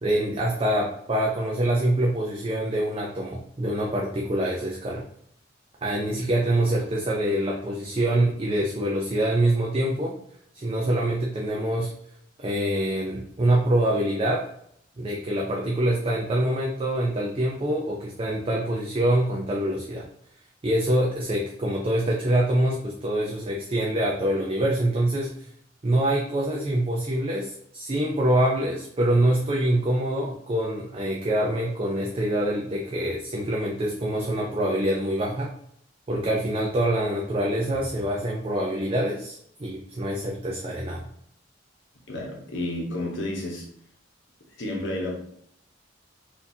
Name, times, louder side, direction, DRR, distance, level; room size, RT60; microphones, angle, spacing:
voice 1, 0.0-5.0 5.8-10.2 10.5-11.9 12.4-14.5 15.0-20.1 20.6-25.5 25.8-35.5 36.1-41.0, right 1 dB, 30° right, -1 dB, 0.5 m, -25 dB
voice 2, 42.1-43.6 44.6-45.2, left 1 dB, 80° left, -1 dB, 1.1 m, -31 dB
4.3 x 2.6 x 2.7 m, 0.68 s
head